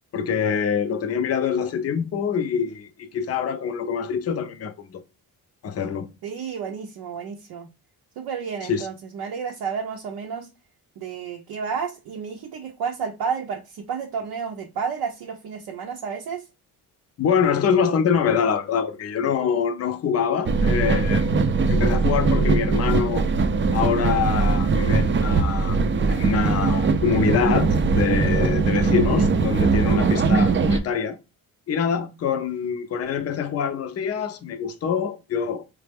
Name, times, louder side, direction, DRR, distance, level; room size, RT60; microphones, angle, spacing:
voice 1, 0.1-5.0 5.6-6.1 8.6-8.9 17.2-21.3 21.7-23.3 23.7-31.2 31.7-35.6, left 7 dB, 40° left, 0.5 m, -25 dB
voice 2, 6.2-7.7 8.2-10.5 11.0-16.4, right 6 dB, 75° right, 0.6 m, -31 dB
sound 1, 20.5-30.8, right 4 dB, 30° right, 0.5 m, -20 dB
3.2 x 2.0 x 3.3 m
cardioid pair, 75°, 39 cm